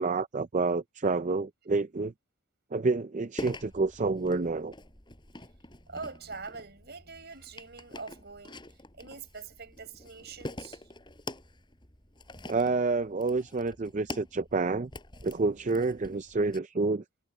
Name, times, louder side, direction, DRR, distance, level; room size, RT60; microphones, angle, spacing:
voice 1, 0.0-2.1 2.7-4.7 12.5-14.9 15.2-17.0, right 3 dB, 35° right, 0.5 m, -28 dB
sound 1, 3.4-16.6, left 1 dB, 20° left, 7.7 m, -46 dB
voice 2, 5.9-8.6 9.0-10.8 15.3-15.5, right 4 dB, 50° right, 5.4 m, -44 dB
head